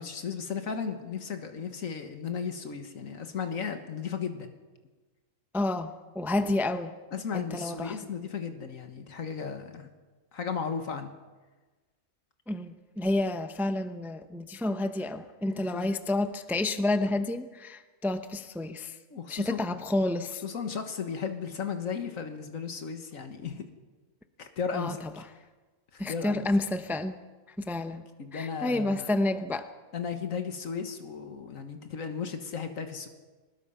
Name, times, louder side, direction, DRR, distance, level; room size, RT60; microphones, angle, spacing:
voice 1, 0.0-4.5 6.4-6.5 7.1-9.9 10.3-11.1 15.5-15.9 19.1-19.7 20.4-23.6 24.4-25.2 25.9-26.5 27.8-27.9 28.2-29.1 29.9-33.1, left 6 dB, 85° left, 7 dB, 1.8 m, -35 dB
voice 2, 5.5-6.9 7.3-8.0 12.5-19.0 19.3-20.4 24.7-25.1 26.0-27.2 27.6-28.1 28.3-29.7, left 2 dB, ahead, 9 dB, 0.7 m, -30 dB
23.0 x 20.5 x 5.7 m, 1.3 s
omnidirectional pair, 1.4 m